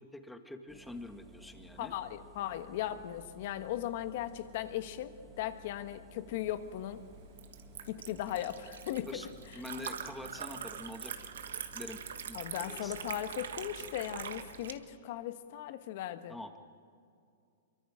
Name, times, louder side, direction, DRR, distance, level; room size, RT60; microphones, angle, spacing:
voice 1, 0.1-1.9 9.1-9.3 9.5-11.3 11.7-12.9 16.3-16.6, left 2 dB, 5° left, 6 dB, 1.7 m, -45 dB
Engine, 0.7-14.7, equal, 15° right, 2.3 m, -56 dB
voice 2, 1.8-7.0 7.9-9.2 12.3-16.6, left 12 dB, 55° left, 10 dB, 1.4 m, -38 dB
Liquid, 6.4-14.7, right 8 dB, 80° right, 1.4 m, -44 dB
25.0 x 23.5 x 5.0 m, 2.4 s
hypercardioid pair, 130°, 0 cm